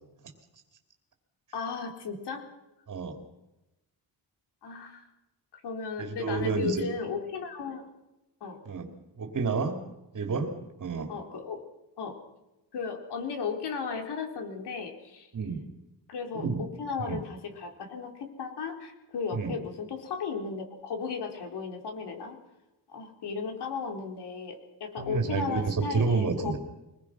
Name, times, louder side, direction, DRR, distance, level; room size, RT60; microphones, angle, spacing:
voice 1, 1.5-2.4 4.6-5.1 5.5-7.9 8.4-8.6 11.1-11.6 12.0-12.2 12.7-15.3 16.1-22.4 22.9-24.6 24.8-26.6, left 5 dB, 65° left, 4 dB, 3.9 m, -35 dB
voice 2, 2.9-3.2 6.0-6.8 8.6-8.9 9.2-9.8 10.1-11.1 15.3-15.6 16.4-16.6 17.1-17.2 19.3-19.5 25.0-26.6, right 4 dB, 40° right, 4 dB, 2.7 m, -29 dB
24.5 x 21.0 x 6.1 m, 0.98 s
wide cardioid pair, 180°, 43 cm